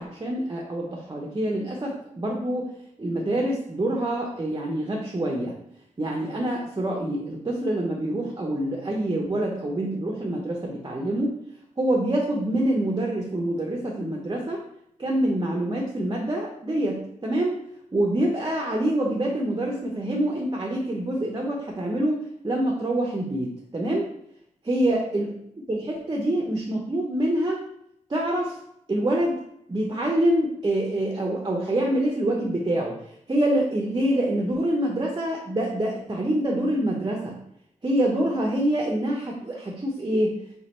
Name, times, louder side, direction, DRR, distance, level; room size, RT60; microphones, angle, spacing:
voice 1, 0.0-2.7 3.0-5.5 6.0-11.4 11.8-14.6 15.0-17.6 17.9-24.1 24.6-25.3 25.7-27.6 28.1-28.6 28.9-29.4 29.7-33.0 33.3-37.4 37.8-40.4, right 1 dB, 30° right, 0 dB, 0.8 m, -26 dB
3.3 x 3.2 x 4.2 m, 0.74 s
cardioid pair, 70°, 14 cm